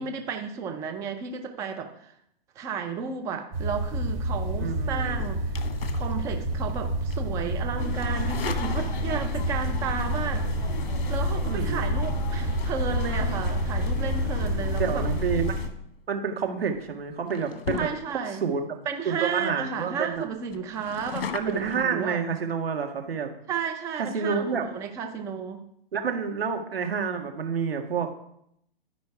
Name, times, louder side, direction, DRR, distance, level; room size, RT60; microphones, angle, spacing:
voice 1, 0.0-2.1 2.6-5.5 5.9-10.8 11.1-15.1 17.8-18.4 18.9-22.2 23.5-25.6, right 6 dB, 10° right, 5 dB, 0.5 m, -33 dB
sound 1, 3.5-15.6, right 1 dB, 30° right, 2.8 m, -29 dB
voice 2, 4.6-5.3 11.5-12.0 14.8-15.6 16.1-17.9 18.4-18.7 19.1-20.3 21.3-23.3 24.0-24.7 25.9-28.1, right 6 dB, 75° right, 4 dB, 1.8 m, -29 dB
sound 2, 5.1-6.7 7.1-7.4 8.0-9.4 10.7-10.9 16.0-16.2 16.7-16.9 17.3-18.4 18.9-19.0 19.2-19.3 19.7-19.8 20.1-21.9, left 7 dB, 70° left, 1.1 m, -37 dB
sound 3, 7.8-15.7, left 6 dB, 55° left, 1.8 m, -33 dB
12.0 x 5.2 x 4.7 m, 0.74 s
hypercardioid pair, 140°, 30 cm